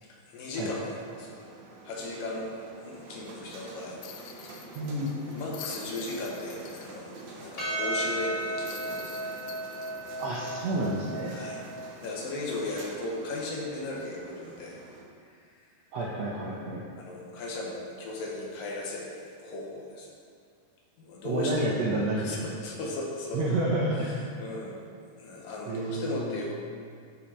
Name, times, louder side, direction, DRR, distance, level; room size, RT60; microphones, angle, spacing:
voice 1, 0.0-1.4 1.9-2.5 2.9-4.0 4.2-4.7 5.3-9.3 11.3-11.6 12.0-14.8 17.0-19.1 19.4-20.1 21.0-21.6 22.2-23.4 24.1-24.7 25.0-26.5, left 2 dB, 75° left, -2 dB, 2.8 m, -36 dB
sound 1, 0.6-15.0, right 2 dB, 65° right, 2.1 m, -47 dB
sound 2, 4.0-7.2 7.6-7.7 8.7-11.4 11.8-11.9 14.0-14.2, left 10 dB, 90° left, 2.4 m, -47 dB
voice 2, 4.7-5.1 10.2-11.3 15.9-16.8 21.2-22.3 23.3-24.1 25.7-26.3, right 2 dB, 80° right, -4 dB, 1.5 m, -29 dB
Percussion, 7.6-12.2, right 1 dB, 35° left, 1.7 m, -35 dB
12.5 x 5.2 x 4.3 m, 2.2 s
omnidirectional pair, 4.1 m